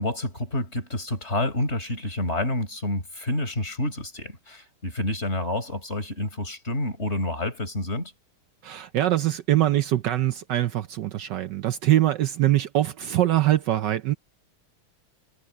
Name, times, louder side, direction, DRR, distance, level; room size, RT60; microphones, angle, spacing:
voice 1, 0.0-8.1, left 1 dB, 30° left, 5.7 m, -28 dB
voice 2, 8.6-14.1, right 13 dB, 70° right, 1.1 m, -23 dB
omnidirectional pair, 2.4 m